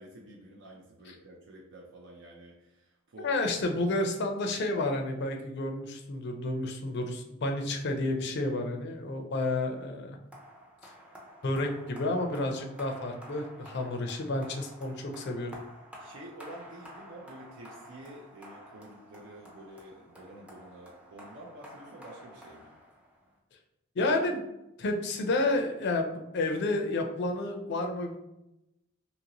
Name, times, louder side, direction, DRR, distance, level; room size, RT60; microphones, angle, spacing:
voice 1, 0.0-3.4 3.7-3.8 16.0-22.7, right 1 dB, 60° right, 0 dB, 0.5 m, -49 dB
voice 2, 3.2-10.2 11.4-15.5 24.0-24.4 24.8-28.2, left 2 dB, 55° left, 4 dB, 0.4 m, -30 dB
sound 1, 10.3-23.3, equal, 5° right, 0.5 m, -50 dB
2.8 x 2.6 x 2.8 m, 0.89 s
head